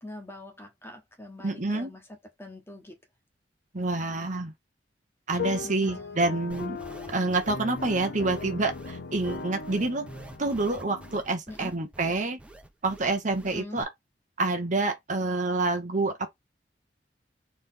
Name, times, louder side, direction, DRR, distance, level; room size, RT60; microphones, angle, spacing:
voice 1, 0.0-3.0 5.6-6.2 11.5-11.7 13.5-13.9, left 1 dB, 15° left, 1.3 m, -44 dB
voice 2, 1.4-1.9 3.7-4.5 5.3-6.8 7.1-10.1 10.4-12.4 12.8-13.9 14.4-16.3, right 3 dB, 45° right, 1.1 m, -27 dB
sound 1, 5.3-11.2, left 5 dB, 60° left, 0.6 m, -38 dB
sound 2, 6.5-13.8, right 1 dB, 5° right, 1.0 m, -47 dB
4.2 x 3.5 x 3.7 m
head